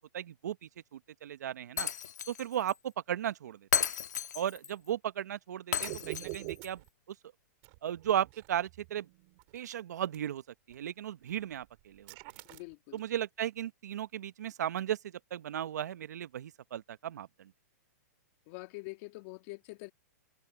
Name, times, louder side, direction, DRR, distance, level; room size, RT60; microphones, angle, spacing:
voice 1, 0.1-1.9 2.3-2.7 3.1-3.6 4.3-6.8 7.8-9.1 9.5-10.4 10.7-12.1 12.9-15.0 15.3-17.5, right 10 dB, 75° right, 1.0 m, -35 dB
Shatter, 1.8-2.4 2.7-2.8 3.7-4.7 5.7-6.7, left 7 dB, 85° left, 1.7 m, -33 dB
sound 1, 5.8-6.9 7.6-9.6 10.1-10.2 10.7-10.9 11.3-13.1, right 33 dB, 45° right, 3.7 m, -45 dB
voice 2, 12.5-13.0 18.5-19.9, left 25 dB, 45° left, 1.9 m, -45 dB
hypercardioid pair, 130°, 9 cm